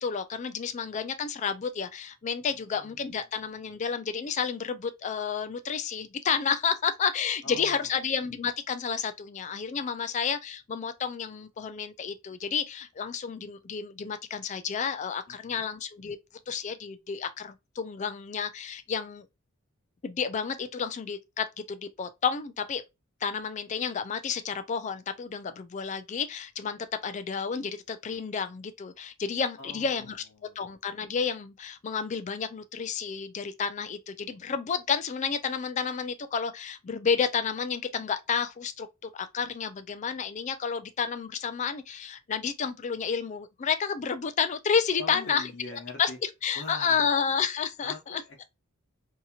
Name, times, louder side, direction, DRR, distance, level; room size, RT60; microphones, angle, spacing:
voice 1, 0.0-16.2 16.5-19.3 20.0-22.8 23.2-30.2 30.6-45.5 46.0-46.1 46.4-48.2, left 6 dB, 35° left, 0.3 m, -31 dB
voice 2, 2.5-3.2 7.4-7.9 15.3-15.7 29.6-30.6 45.0-46.2 46.5-47.1 47.8-48.4, left 3 dB, 55° left, 0.9 m, -44 dB
2.8 x 2.7 x 2.3 m
head